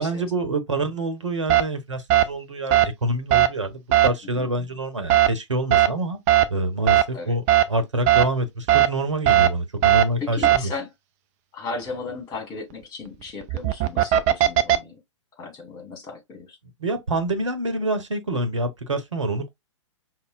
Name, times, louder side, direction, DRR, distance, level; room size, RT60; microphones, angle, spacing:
voice 1, 0.0-6.2 6.5-10.7 16.8-19.5, right 2 dB, 80° right, 0.9 m, -26 dB
sound 1, 1.5-1.6 2.1-2.2 2.7-2.9 3.3-3.5 3.9-4.1 5.1-5.3 5.7-5.9 6.3-6.5 6.9-7.0 7.5-7.6 8.1-8.2 8.7-8.9 9.3-9.5 9.8-10.0 10.4-10.6 13.4-14.8, right 13 dB, 30° right, 0.3 m, -16 dB
voice 2, 10.2-10.9 11.5-14.9 15.4-16.6, left 4 dB, 25° left, 1.5 m, -35 dB
5.3 x 2.1 x 2.3 m
figure-of-eight pair, 115°, 16 cm